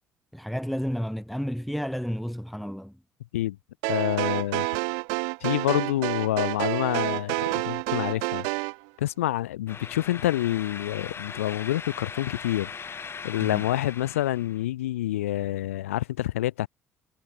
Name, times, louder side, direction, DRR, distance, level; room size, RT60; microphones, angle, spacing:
voice 1, 0.3-3.0 13.4-13.6, equal, ahead, 0.8 m, -31 dB
sound 1, 3.8-8.8, right 40 dB or more, 65° right, 0.4 m, -29 dB
voice 2, 3.9-4.7 5.4-8.5 9.0-12.7 13.2-16.7, left 14 dB, 75° left, 0.5 m, -27 dB
sound 2, 9.7-14.6, left 6 dB, 35° left, 1.3 m, -39 dB
figure-of-eight pair, 50°, 7 cm